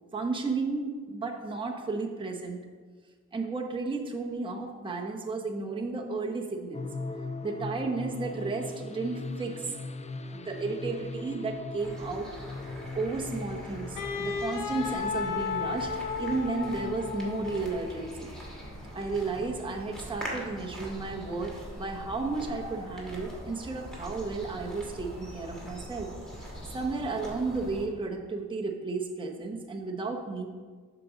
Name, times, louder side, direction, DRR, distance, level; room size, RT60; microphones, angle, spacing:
voice 1, 0.1-2.7 3.3-6.9 7.4-9.7 10.3-12.4 12.9-18.3 18.9-26.1 26.7-30.5, right 3 dB, 15° right, 1 dB, 0.8 m, -33 dB
sound 1, 6.7-26.0, left 3 dB, 20° left, 0.4 m, -42 dB
sound 2, 11.8-27.9, equal, ahead, 2.2 m, -43 dB
Wind instrument woodwind instrument, 14.0-18.0, left 6 dB, 90° left, 0.7 m, -34 dB
7.4 x 3.9 x 6.2 m, 1.5 s
cardioid pair, 75°, 31 cm